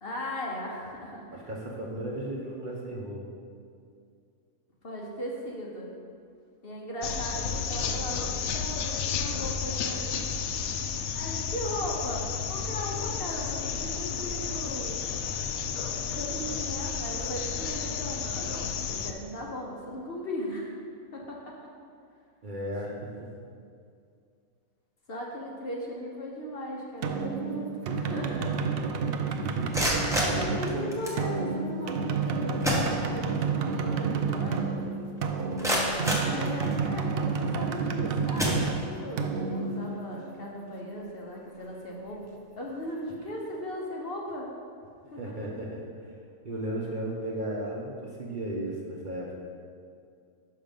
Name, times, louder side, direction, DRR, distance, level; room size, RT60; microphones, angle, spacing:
voice 1, 0.0-1.4 4.8-5.9 6.6-10.3 11.1-15.0 16.1-20.8 21.1-21.5 25.1-28.7 30.1-34.8 36.3-42.2 42.6-44.5 45.1-45.2, equal, 50° left, -2 dB, 1.0 m, -37 dB
voice 2, 1.3-3.2 22.4-23.3 30.1-30.5 35.3-35.7 45.2-46.1 46.4-49.4, right 1 dB, 40° right, -3 dB, 0.9 m, -35 dB
sound 1, 7.0-19.1, left 6 dB, 80° left, 1.0 m, -32 dB
sound 2, 27.0-40.6, right 5 dB, 65° right, 0.6 m, -30 dB
sound 3, 29.5-31.2 32.2-32.3 32.6-33.5 33.9-34.0 34.5-34.6 35.2-37.0 37.7-37.9 38.3-39.2, equal, 5° right, 0.9 m, -30 dB
6.0 x 5.6 x 5.2 m, 2.3 s
omnidirectional pair, 1.4 m